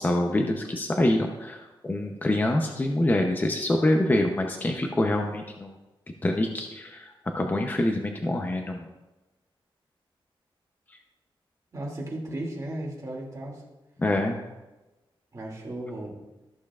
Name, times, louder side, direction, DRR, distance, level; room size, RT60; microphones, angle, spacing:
voice 1, 0.0-5.7 6.2-8.9 14.0-14.4, left 1 dB, 20° left, 2 dB, 0.7 m, -25 dB
voice 2, 11.7-13.6 15.3-16.1, right 1 dB, 35° right, -3 dB, 2.4 m, -35 dB
14.0 x 6.9 x 2.4 m, 1.1 s
wide cardioid pair, 125°, 9 cm